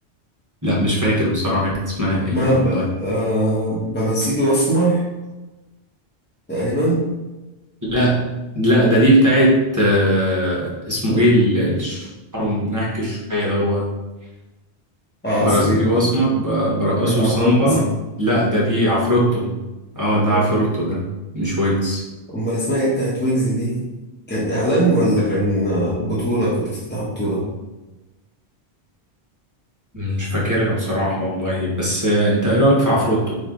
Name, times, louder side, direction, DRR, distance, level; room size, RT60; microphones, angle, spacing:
voice 1, 0.6-2.8 7.9-8.3 8.5-13.9 15.4-17.8 18.2-19.5 19.9-21.0 21.3-22.0 29.9-33.4, equal, 15° right, -6 dB, 1.2 m, -19 dB
voice 2, 2.3-5.0 6.5-7.0 15.2-16.1 17.0-17.8 20.3-20.4 22.3-23.8 24.3-27.4, right 1 dB, 10° left, -8 dB, 0.9 m, -21 dB
4.2 x 3.3 x 3.8 m, 1.1 s
omnidirectional pair, 1.1 m